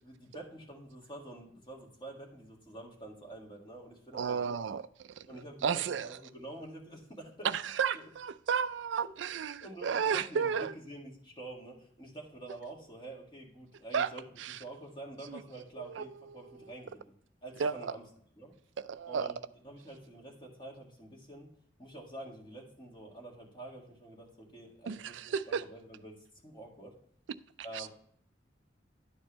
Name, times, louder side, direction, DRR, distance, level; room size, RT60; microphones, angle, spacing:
voice 1, 0.0-4.5 5.3-7.5 7.9-8.1 9.6-14.2 14.6-17.0 17.4-18.0 18.4-18.5 19.1-19.3 19.6-21.5 21.8-26.9 27.6-27.9, right 1 dB, 25° left, 1.8 m, -47 dB
voice 2, 4.1-6.2 7.4-10.7 13.9-14.1 14.4-14.6 15.3-15.4 15.8-16.5 17.6-18.0 18.8-19.3 24.9-25.6 27.7-27.9, right 6 dB, 80° right, 0.4 m, -33 dB
11.0 x 4.4 x 3.0 m
head